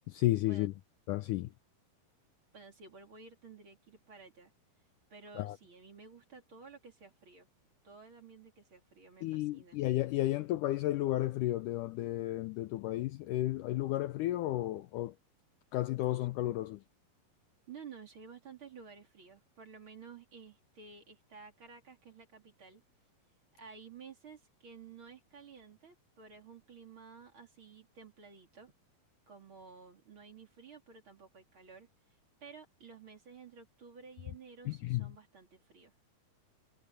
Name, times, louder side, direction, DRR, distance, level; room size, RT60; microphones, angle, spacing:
voice 1, 0.1-0.7 1.1-1.5 5.4-5.6 9.2-15.1 15.7-16.8 34.7-35.1, left 15 dB, 85° left, 1.8 m, -32 dB
voice 2, 2.5-4.5 5.1-7.5 7.8-9.8 16.1-16.3 17.7-22.8 23.6-28.7 29.3-31.9 32.4-35.9, right 5 dB, 35° right, 3.7 m, -53 dB
omnidirectional pair, 4.4 m